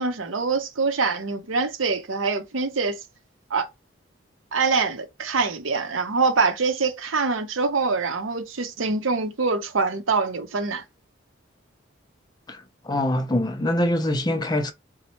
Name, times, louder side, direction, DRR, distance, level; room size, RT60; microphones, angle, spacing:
voice 1, 0.0-3.0 3.5-3.7 4.5-10.8, right 4 dB, 80° right, 0.7 m, -24 dB
voice 2, 12.5-14.7, left 1 dB, 20° left, 0.4 m, -24 dB
4.3 x 2.1 x 2.9 m
head